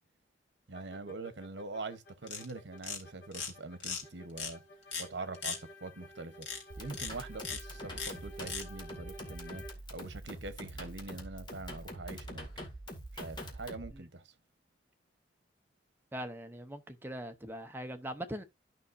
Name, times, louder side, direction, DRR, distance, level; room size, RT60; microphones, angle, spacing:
sound 1, 0.7-9.7, equal, 70° left, 1.9 m, -53 dB
voice 1, 0.7-4.6 5.0-6.5 6.8-9.6 9.9-12.5 13.1-14.3, right 3 dB, 70° right, 1.0 m, -44 dB
sound 2, 2.3-2.5 2.8-3.0 3.3-3.5 3.8-4.0 4.4-4.5 4.9-5.0 5.3-5.6 6.4-6.6 6.9-7.1 7.4-7.6 7.9-8.1 8.4-8.6, left 5 dB, 90° left, 2.4 m, -37 dB
sound 3, 6.7-13.9, equal, 25° left, 2.1 m, -45 dB
voice 2, 16.1-18.4, equal, 10° right, 0.8 m, -41 dB
12.5 x 5.6 x 2.6 m
head